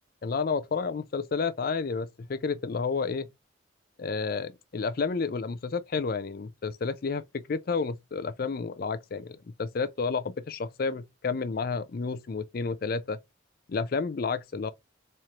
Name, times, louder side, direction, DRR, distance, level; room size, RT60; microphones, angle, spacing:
voice 1, 0.2-3.3 4.0-13.2 13.7-14.7, left 4 dB, 50° left, 0.4 m, -31 dB
4.3 x 3.1 x 2.4 m
head